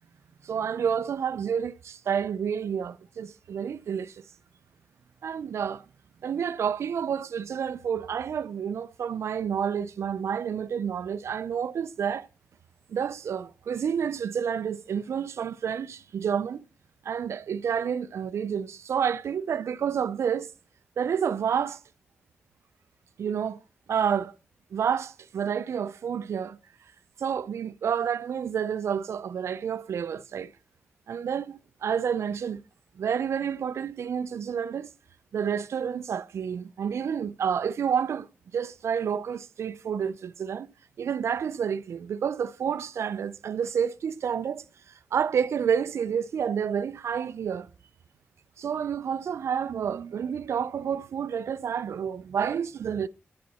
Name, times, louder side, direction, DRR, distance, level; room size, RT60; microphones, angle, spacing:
voice 1, 0.4-4.2 5.2-5.8 6.2-12.3 12.9-16.6 17.0-20.5 21.0-21.8 23.2-23.6 23.9-24.3 24.7-26.6 27.2-30.5 31.1-32.6 33.0-34.9 35.3-38.3 38.5-40.7 41.0-44.6 45.1-47.7 48.6-53.1, right 7 dB, 75° right, 0.4 m, -29 dB
10.0 x 7.6 x 4.1 m
supercardioid pair, 40°, 5 cm